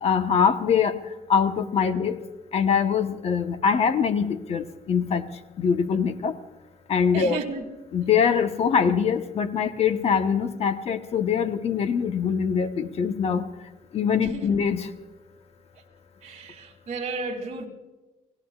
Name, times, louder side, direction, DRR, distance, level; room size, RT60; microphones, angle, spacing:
voice 1, 0.0-1.0 1.3-2.2 2.5-5.2 5.6-6.3 6.9-7.4 7.9-13.4 13.9-14.9, left 7 dB, 45° left, 1.1 m, -23 dB
voice 2, 7.1-7.6 14.2-14.5 16.2-17.7, right 4 dB, 50° right, 2.9 m, -33 dB
29.5 x 18.5 x 2.4 m
cardioid pair, 150°, 15 cm